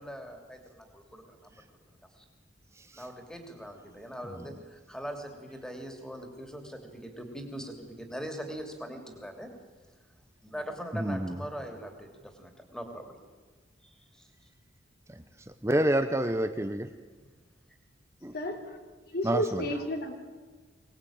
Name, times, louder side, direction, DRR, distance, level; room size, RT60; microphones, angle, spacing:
voice 1, 0.0-1.6 2.1-2.2 2.9-9.5 10.4-13.2 13.8-14.3, equal, 5° left, 4 dB, 3.1 m, -41 dB
voice 2, 10.9-11.4 15.6-16.9 18.2-18.3 19.2-19.6, right 1 dB, 15° right, 8 dB, 0.9 m, -28 dB
voice 3, 18.3-18.8 19.1-20.1, equal, 55° left, 4 dB, 3.3 m, -32 dB
24.0 x 19.5 x 8.9 m, 1.4 s
head